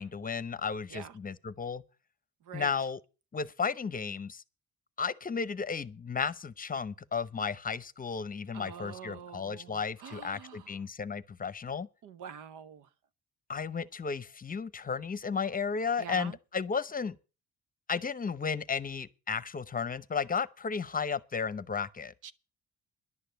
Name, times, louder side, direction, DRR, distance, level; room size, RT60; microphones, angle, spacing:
voice 1, 0.0-1.8 2.5-3.0 3.3-4.4 5.0-11.9 13.5-17.1 17.9-22.1, left 5 dB, 30° left, 0.8 m, -34 dB
voice 2, 8.5-10.7 12.0-12.9 16.0-16.4 22.2-22.3, right 8 dB, 90° right, 1.0 m, -45 dB
11.0 x 6.6 x 9.2 m
cardioid pair, 90°, 30 cm